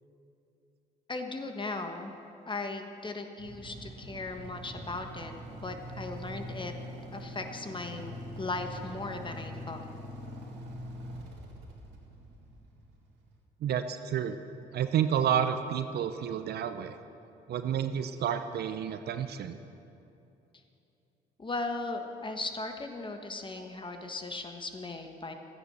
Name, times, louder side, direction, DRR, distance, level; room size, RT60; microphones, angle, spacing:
voice 1, 1.1-2.1 2.5-5.3 5.6-6.7 7.1-9.8 21.4-25.3, left 3 dB, 25° left, 5 dB, 1.4 m, -37 dB
Motorcycle / Idling, 3.4-13.3, equal, 80° right, 2.0 m, -43 dB
voice 2, 13.6-14.4 14.7-17.0 17.5-19.6, right 8 dB, 65° right, 10 dB, 0.7 m, -30 dB
12.5 x 9.9 x 6.8 m, 2.8 s
supercardioid pair, 65°, 18 cm